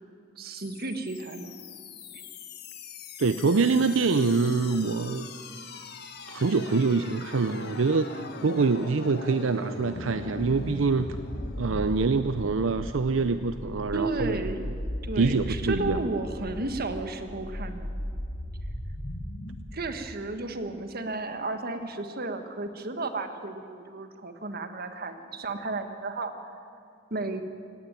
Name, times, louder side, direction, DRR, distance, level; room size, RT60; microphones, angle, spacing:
voice 1, 0.4-1.5 2.1-2.2 13.9-14.7 15.0-18.0 19.7-26.5 27.1-27.4, right 2 dB, 50° right, 8 dB, 1.5 m, -33 dB
sound 1, 0.6-19.6, left 1 dB, 55° left, 1.9 m, -38 dB
voice 2, 3.2-5.3 6.3-11.2 11.6-14.4 15.2-16.1, right 4 dB, 75° right, 11 dB, 0.6 m, -25 dB
18.0 x 17.0 x 9.6 m, 2.4 s
head